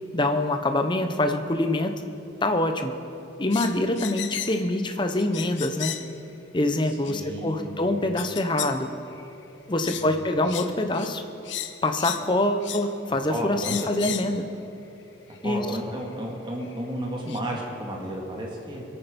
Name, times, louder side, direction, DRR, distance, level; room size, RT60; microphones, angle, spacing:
voice 1, 0.1-1.9 2.4-3.0 3.4-6.0 6.5-8.9 9.7-11.2 11.8-14.4 15.4-15.7, left 1 dB, 25° left, 6 dB, 0.8 m, -25 dB
sound 1, 3.5-4.7 5.2-6.1 7.0-7.1 8.2-8.8 9.1-9.3 9.8-10.1 10.4-10.7 10.9-11.1 11.4-12.3 12.6-12.9 13.6-14.3 15.3-15.4 16.6-16.7 17.3-17.4, left 11 dB, 65° left, 0.7 m, -34 dB
voice 2, 7.1-7.7 9.8-10.3 13.3-13.7 15.4-18.8, right 1 dB, 25° right, -2 dB, 2.1 m, -33 dB
22.5 x 8.9 x 5.3 m, 3.0 s
head